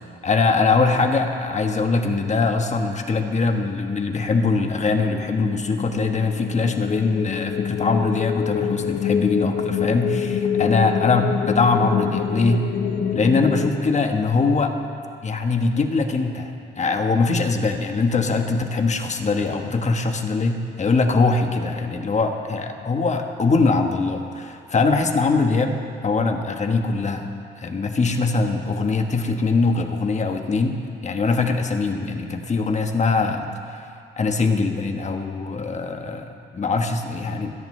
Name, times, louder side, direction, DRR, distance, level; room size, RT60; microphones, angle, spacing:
voice 1, 0.2-12.7 13.1-14.7 15.2-25.8 26.0-27.3 27.6-33.5 34.2-37.5, left 4 dB, 35° left, 5 dB, 1.3 m, -22 dB
sound 1, 4.2-13.7, left 7 dB, 70° left, 1.2 m, -27 dB
28.0 x 10.5 x 3.3 m, 2.4 s
cardioid pair, 90°, 20 cm